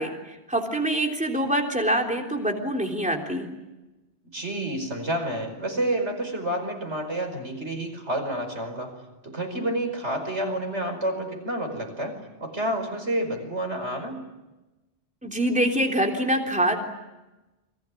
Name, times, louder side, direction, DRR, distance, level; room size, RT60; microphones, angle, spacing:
voice 1, 0.0-3.5 15.2-16.9, right 1 dB, 5° right, 2 dB, 3.4 m, -25 dB
voice 2, 4.3-9.0 9.2-14.2, right 1 dB, 85° right, 6 dB, 5.3 m, -29 dB
29.5 x 23.0 x 8.5 m, 1.1 s
omnidirectional pair, 1.1 m